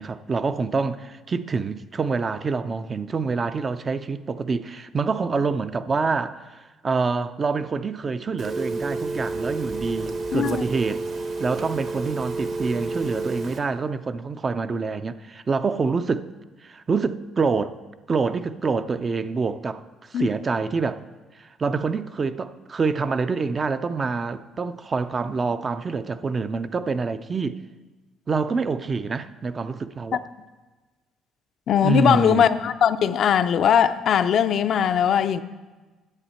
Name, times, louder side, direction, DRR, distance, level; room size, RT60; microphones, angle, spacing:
voice 1, 0.0-11.0 11.4-16.3 16.6-17.8 18.1-21.0 21.4-27.6 28.3-30.2 31.8-32.5, right 4 dB, 35° right, 0.4 m, -26 dB
Telephone, 8.4-13.6, right 3 dB, 55° right, 1.1 m, -30 dB
voice 2, 10.3-10.6 20.1-20.3 31.7-35.4, left 8 dB, 60° left, 0.4 m, -20 dB
9.8 x 7.3 x 4.3 m
cardioid pair, 90°, 0 cm